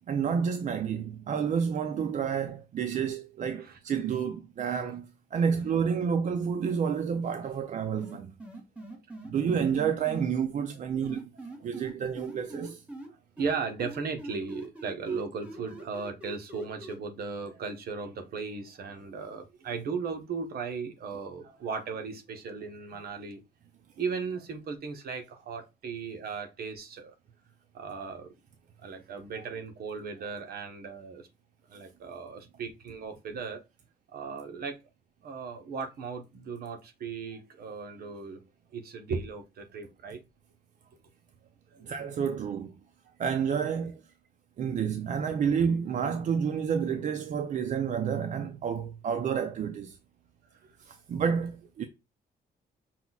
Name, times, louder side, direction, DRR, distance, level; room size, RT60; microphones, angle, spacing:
voice 1, 0.1-8.3 9.2-11.3 11.6-12.8 41.8-42.7 43.2-44.0 44.6-50.0 50.8-51.9, right 7 dB, 45° right, 0.4 m, -29 dB
sound 1, 8.0-10.3 11.0-13.1 13.4-17.0, right 2 dB, 5° right, 1.0 m, -42 dB
voice 2, 13.4-23.4 24.0-27.1 27.7-28.3 28.8-31.3 31.7-33.6 34.1-34.8 35.2-38.4 38.7-40.2 41.7-41.9 50.6-50.8, right 5 dB, 60° right, 0.9 m, -37 dB
5.7 x 2.3 x 4.0 m
cardioid pair, 165°, 17 cm